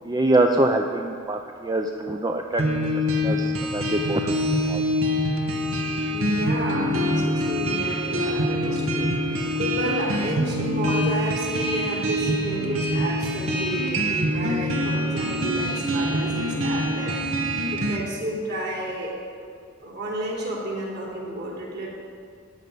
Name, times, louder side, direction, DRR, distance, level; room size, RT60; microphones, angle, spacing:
voice 1, 0.0-2.6 3.2-4.3 4.7-4.8, right 2 dB, 20° right, 3 dB, 0.5 m, -24 dB
sound 1, 2.6-18.0, equal, 80° right, 1.4 m, -25 dB
voice 2, 6.1-9.1 9.6-17.2 17.7-19.4 19.8-21.9, right 1 dB, 55° right, -4 dB, 3.5 m, -31 dB
13.5 x 5.3 x 9.4 m, 2.3 s
head